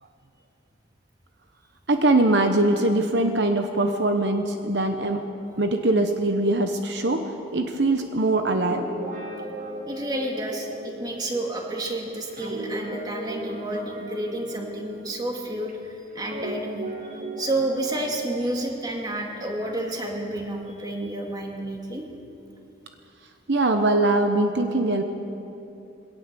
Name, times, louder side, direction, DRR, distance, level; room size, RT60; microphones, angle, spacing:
voice 1, 1.9-5.2 5.6-8.9 23.5-25.0, right 2 dB, 65° right, 5 dB, 1.0 m, -22 dB
Guitar, 8.5-15.7 16.2-19.9, right 1 dB, 45° right, 2.2 m, -37 dB
voice 2, 9.9-22.0, right 1 dB, 20° right, 0 dB, 2.3 m, -30 dB
22.0 x 17.5 x 6.9 m, 2.8 s
head